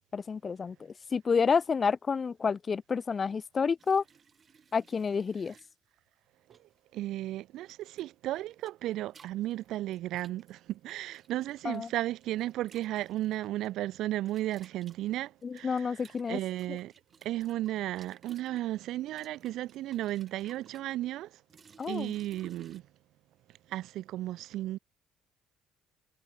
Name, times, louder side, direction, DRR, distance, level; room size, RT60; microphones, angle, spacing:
voice 1, 0.1-4.0 4.7-5.5 11.6-11.9 15.4-16.4 21.8-22.1, left 5 dB, 35° left, 0.3 m, -29 dB
sound 1, 3.8-5.7 6.5-6.8 7.7-8.1 8.3-11.9 12.2-13.7 14.2-18.6 19.1-20.9 21.5-22.8, right 6 dB, 40° right, 5.3 m, -58 dB
voice 2, 6.9-16.9 17.2-21.3 21.9-22.8 23.7-24.8, right 14 dB, 70° right, 0.9 m, -34 dB
supercardioid pair, 70°, 0 cm